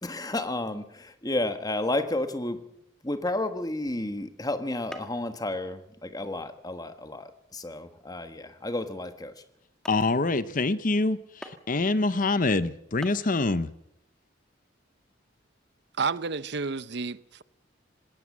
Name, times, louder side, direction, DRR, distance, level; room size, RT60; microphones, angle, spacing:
voice 1, 0.0-2.6 3.0-9.4, left 2 dB, 20° left, 1.4 m, -31 dB
sound 1, 4.9-5.3 5.7-6.1 6.7-6.8 7.4-7.6 8.2-8.3 8.9-9.0 9.4-9.5 9.8-10.1 11.4-11.8 12.7-12.8 13.0-13.3, equal, 5° left, 1.9 m, -45 dB
voice 2, 9.9-13.7, left 3 dB, 45° left, 0.8 m, -25 dB
voice 3, 16.0-17.4, right 5 dB, 60° right, 0.7 m, -30 dB
19.5 x 18.0 x 7.4 m
head